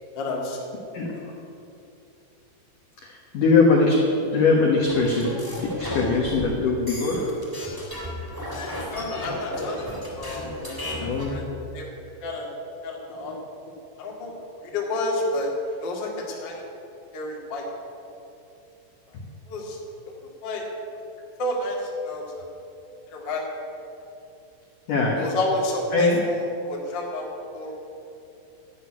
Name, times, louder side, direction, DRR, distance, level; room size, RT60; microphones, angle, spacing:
voice 1, 0.1-0.6 8.6-9.8 10.1-10.5 11.0-11.4 11.7-11.9 12.2-12.5 12.8-13.4 14.0-14.3 14.7-15.5 15.8-16.6 17.1-17.9 19.5-19.8 20.0-20.1 20.4-20.6 21.4-22.5 23.1-23.4 25.2-27.2 27.5-27.7, left 2 dB, 60° left, -2 dB, 1.1 m, -30 dB
voice 2, 0.9-1.3 3.0-4.1 4.3-5.3 5.6-7.3 11.0-11.3 19.1-19.2 24.9-25.2 25.9-26.3, left 3 dB, 80° left, -2 dB, 1.9 m, -21 dB
sound 1, 4.8-11.4, equal, 5° right, 1.5 m, -33 dB
13.5 x 6.4 x 10.0 m, 2.7 s
omnidirectional pair, 6.0 m